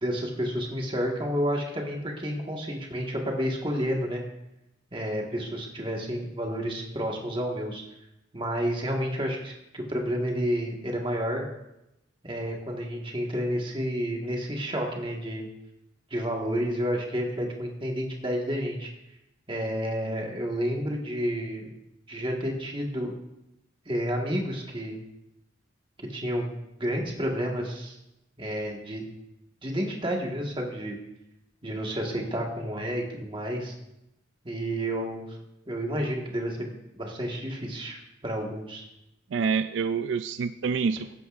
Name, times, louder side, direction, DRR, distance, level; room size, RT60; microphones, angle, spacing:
voice 1, 0.0-4.2 4.9-7.8 8.3-11.4 12.2-15.5 16.1-18.9 19.5-21.7 22.1-23.1 23.9-25.0 26.0-26.5 26.8-28.0 28.4-29.0 29.6-31.0 31.6-33.7 34.4-35.4 35.7-38.8, equal, 25° right, 0 dB, 1.6 m, -30 dB
voice 2, 39.3-41.1, right 5 dB, 70° right, 10 dB, 0.4 m, -27 dB
17.5 x 9.4 x 2.5 m, 0.91 s
head